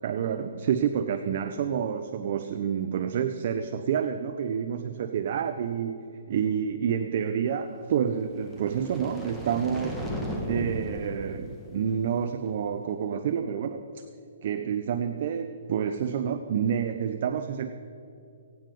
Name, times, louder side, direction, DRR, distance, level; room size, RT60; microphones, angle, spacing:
voice 1, 0.0-14.0 14.4-17.7, right 8 dB, 50° right, 9 dB, 0.7 m, -29 dB
sound 1, 8.2-12.4, equal, ahead, 1.4 m, -36 dB
17.5 x 9.3 x 5.3 m, 2.7 s
hypercardioid pair, 145°, 0 cm